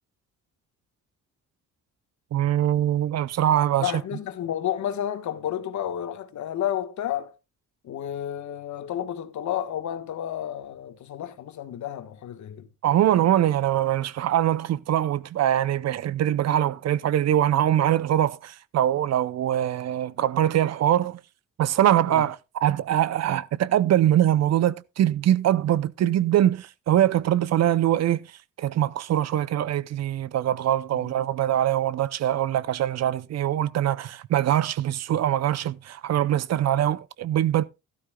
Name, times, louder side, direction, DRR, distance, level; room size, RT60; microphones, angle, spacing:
voice 1, 2.3-3.9 12.8-21.2 21.6-28.3 28.6-37.6, right 11 dB, 60° right, 0.6 m, -23 dB
voice 2, 3.8-7.3 7.8-12.7 22.1-22.2 30.9-31.1, left 10 dB, 70° left, 1.4 m, -31 dB
13.5 x 12.5 x 2.3 m
cardioid pair, 90°, 30 cm